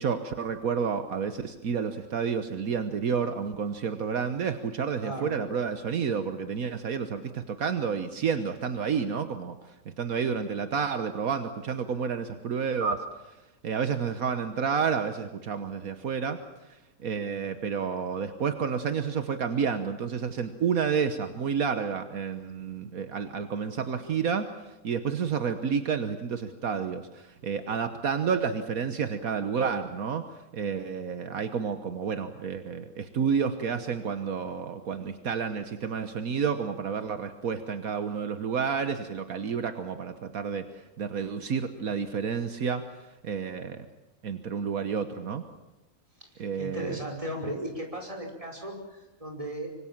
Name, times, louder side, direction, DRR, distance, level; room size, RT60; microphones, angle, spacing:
voice 1, 0.0-9.6 9.8-13.0 13.6-16.4 16.7-30.2 30.5-42.8 43.2-43.8 44.2-45.4 46.4-47.0, right 6 dB, 75° right, 9 dB, 1.6 m, -30 dB
voice 2, 5.0-5.4 46.3-49.7, right 1 dB, 20° right, 1 dB, 5.4 m, -36 dB
25.0 x 25.0 x 7.4 m, 0.98 s
omnidirectional pair, 1.5 m